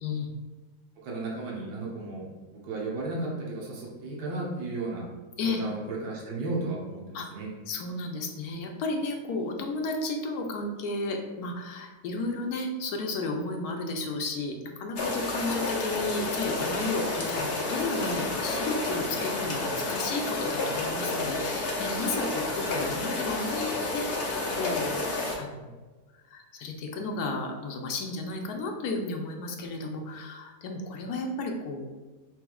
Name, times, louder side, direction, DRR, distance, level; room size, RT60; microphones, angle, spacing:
voice 1, 0.0-0.3 5.4-5.6 7.1-7.3 7.7-25.8 26.3-31.9, left 2 dB, 75° left, 3 dB, 1.2 m, -33 dB
voice 2, 1.0-5.0 5.4-7.5, right 2 dB, 85° right, -4 dB, 1.5 m, -34 dB
sound 1, 15.0-25.4, left 2 dB, 45° left, 0.9 m, -30 dB
6.0 x 3.5 x 2.3 m, 1.2 s
omnidirectional pair, 1.7 m